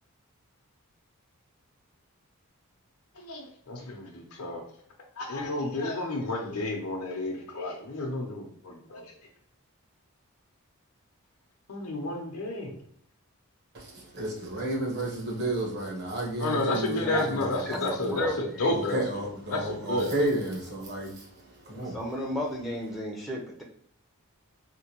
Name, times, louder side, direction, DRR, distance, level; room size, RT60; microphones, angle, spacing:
voice 1, 3.1-4.6 5.2-9.1 11.7-12.8 16.4-20.2, left 2 dB, 80° left, 0.7 m, -31 dB
voice 2, 13.7-18.3 18.6-22.0, right 1 dB, 50° right, 1.1 m, -32 dB
voice 3, 17.0-18.7 21.7-23.6, left 1 dB, ahead, 0.5 m, -34 dB
3.6 x 2.6 x 2.9 m
head